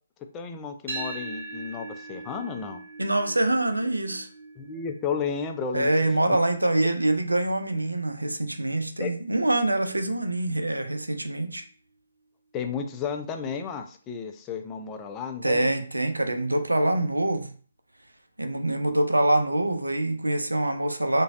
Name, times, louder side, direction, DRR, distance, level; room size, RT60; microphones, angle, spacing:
voice 1, 0.3-2.8 4.6-6.1 9.0-9.1 12.5-15.7, left 6 dB, 20° left, 5 dB, 0.3 m, -33 dB
sound 1, 0.9-9.1, right 3 dB, 50° right, 1.0 m, -42 dB
voice 2, 3.0-4.3 5.7-11.6 15.4-17.5 18.4-21.2, right 1 dB, 85° right, 7 dB, 0.4 m, -25 dB
3.0 x 2.5 x 2.4 m, 0.42 s
figure-of-eight pair, 140°, 0 cm